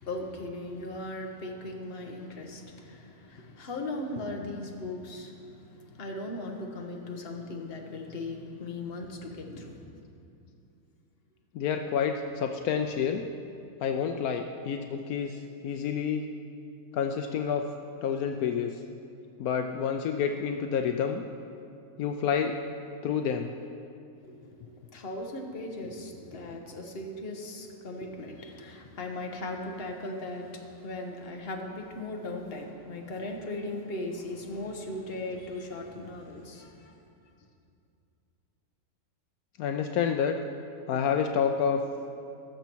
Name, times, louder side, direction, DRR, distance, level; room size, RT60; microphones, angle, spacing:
voice 1, 0.0-5.4 5.9-9.7 24.2-24.5 24.9-36.7, left 2 dB, 45° left, 2 dB, 1.3 m, -38 dB
voice 2, 11.5-13.2 13.8-16.3 16.9-17.7 18.0-18.8 19.4-21.2 22.0-22.6 23.0-23.5 39.6-40.4 40.9-41.8, left 7 dB, 75° left, 5 dB, 1.0 m, -28 dB
18.5 x 7.0 x 4.5 m, 2.5 s
omnidirectional pair, 1.6 m